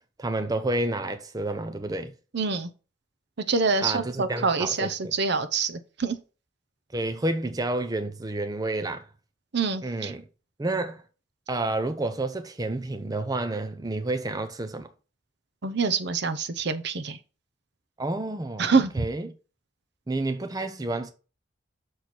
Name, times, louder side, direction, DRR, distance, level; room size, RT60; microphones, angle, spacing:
voice 1, 0.2-2.1 3.8-4.9 6.9-9.1 9.8-10.2 10.6-11.0 11.5-14.9 18.0-19.3 20.1-21.1, right 2 dB, 20° right, 0.6 m, -30 dB
voice 2, 2.3-2.7 3.5-6.2 9.5-10.1 15.6-17.2 18.6-19.0, right 4 dB, 60° right, 0.8 m, -26 dB
6.5 x 4.3 x 6.0 m
head